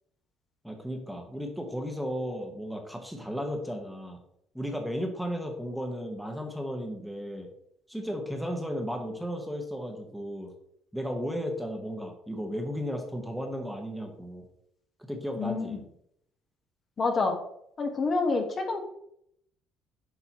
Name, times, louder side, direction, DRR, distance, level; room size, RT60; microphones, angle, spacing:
voice 1, 0.6-4.2 4.5-7.5 7.9-10.5 10.9-14.4 15.1-15.8, equal, ahead, 2 dB, 1.2 m, -34 dB
voice 2, 15.4-15.8 17.0-17.4 17.8-18.8, left 3 dB, 35° left, 3 dB, 1.4 m, -27 dB
8.4 x 5.3 x 3.0 m, 0.73 s
cardioid pair, 110°, 0 cm